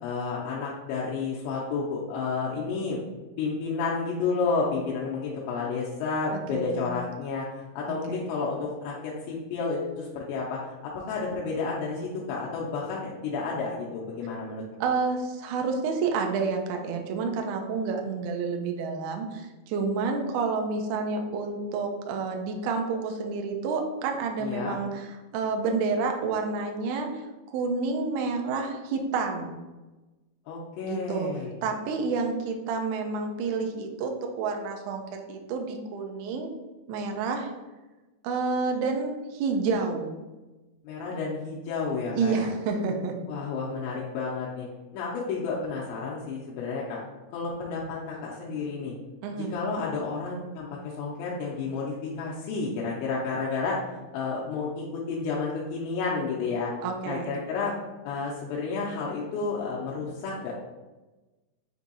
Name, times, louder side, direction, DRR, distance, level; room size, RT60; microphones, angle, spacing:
voice 1, 0.0-3.0 3.4-7.5 7.8-14.6 24.4-24.8 30.5-31.6 40.8-42.5 43.3-44.7 44.9-47.0 47.3-48.9 49.4-56.7 57.1-57.8 58.0-60.5, left 4 dB, 90° left, -4 dB, 2.9 m, -31 dB
voice 2, 6.5-6.9 7.9-8.0 14.8-27.2 27.5-29.5 30.8-31.3 31.6-36.5 36.9-37.5 38.2-40.2 42.1-43.2 49.2-49.5 56.8-57.3, right 4 dB, 90° right, 3 dB, 2.1 m, -29 dB
7.1 x 2.6 x 2.7 m, 1.1 s
omnidirectional pair, 5.1 m